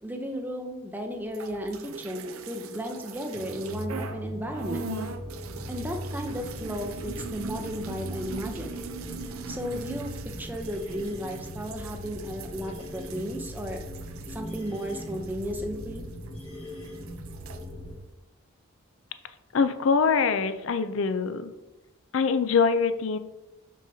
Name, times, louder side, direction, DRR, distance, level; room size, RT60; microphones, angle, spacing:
voice 1, 0.0-4.9 5.7-8.8 9.5-13.8 14.3-16.0, equal, 10° right, 3 dB, 0.6 m, -34 dB
sound 1, 1.3-4.2 4.5-16.4 16.7-17.6, right 4 dB, 85° right, 0.6 m, -41 dB
sound 2, 3.3-18.0, equal, 25° left, 1.5 m, -39 dB
voice 2, 19.5-21.5 22.1-23.2, left 5 dB, 70° left, 11 dB, 0.5 m, -24 dB
6.5 x 6.4 x 2.7 m, 1.0 s
head